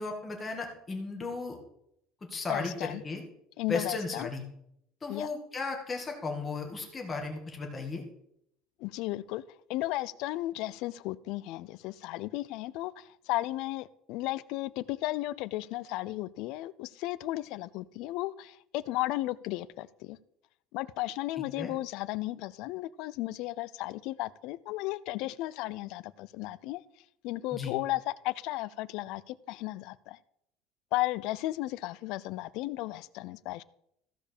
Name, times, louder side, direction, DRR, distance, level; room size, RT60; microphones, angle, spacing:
voice 1, 0.0-1.6 2.3-3.2 3.7-4.4 5.0-8.0 21.6-21.7 27.5-27.7, left 3 dB, 15° left, 2 dB, 2.0 m, -35 dB
voice 2, 2.5-3.0 3.6-4.3 5.1-5.3 8.8-9.4 9.7-20.2 20.7-26.8 27.2-30.2 30.9-33.6, left 17 dB, 60° left, 18 dB, 0.4 m, -34 dB
15.0 x 5.2 x 6.7 m, 0.75 s
cardioid pair, 170°, 0 cm